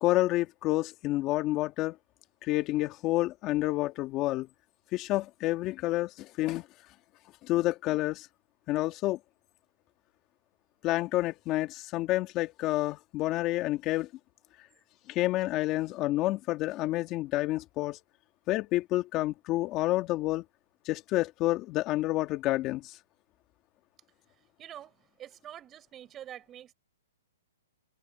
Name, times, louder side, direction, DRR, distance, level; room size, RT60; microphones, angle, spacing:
voice 1, 0.0-1.9 2.4-4.5 4.9-6.6 7.4-8.3 8.7-9.2 10.8-14.1 15.1-18.0 18.5-20.4 20.9-22.9, left 17 dB, 30° left, 2.3 m, -29 dB
voice 2, 24.6-26.7, right 11 dB, 20° right, 7.2 m, -46 dB
hypercardioid pair, 145°, 0 cm